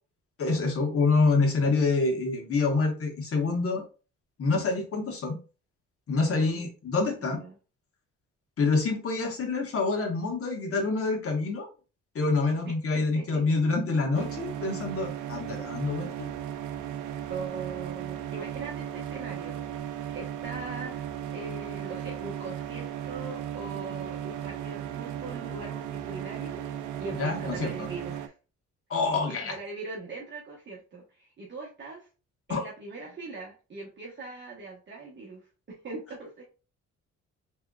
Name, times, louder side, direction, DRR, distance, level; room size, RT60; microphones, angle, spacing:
voice 1, 0.4-3.8 4.4-5.4 6.1-7.4 8.6-11.7 12.1-16.3 27.2-27.9 28.9-29.6 32.5-32.6, left 3 dB, 50° left, 2 dB, 1.4 m, -26 dB
voice 2, 6.3-6.7 7.3-7.6 12.9-13.4 17.3-19.6 20.1-21.1 21.3-26.6 27.0-28.3 29.1-32.1 32.5-36.4, right 3 dB, 40° right, -3 dB, 1.1 m, -41 dB
sound 1, 14.1-28.3, right 10 dB, 80° right, 0.5 m, -36 dB
3.6 x 3.3 x 2.4 m, 0.34 s
cardioid pair, 90°, 30 cm